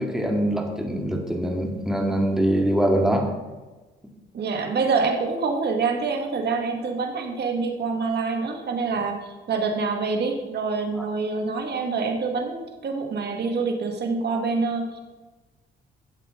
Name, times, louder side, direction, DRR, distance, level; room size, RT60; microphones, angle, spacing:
voice 1, 0.0-3.3, right 1 dB, ahead, 1 dB, 2.1 m, -23 dB
voice 2, 4.3-15.0, right 4 dB, 55° right, 3 dB, 1.9 m, -26 dB
12.5 x 8.0 x 3.8 m, 1.2 s
cardioid pair, 90°, 20 cm